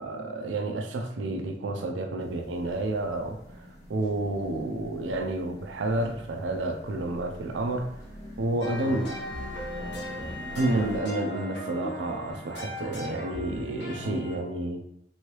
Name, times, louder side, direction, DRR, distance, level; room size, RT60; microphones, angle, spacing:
voice 1, 0.0-8.0 8.4-9.1 10.5-14.8, right 2 dB, 90° right, 5 dB, 0.4 m, -30 dB
sound 1, 2.2-11.0, equal, 20° left, 0.8 m, -45 dB
sound 2, 8.6-14.4, left 1 dB, 75° left, 0.9 m, -37 dB
3.0 x 2.7 x 3.0 m, 0.76 s
head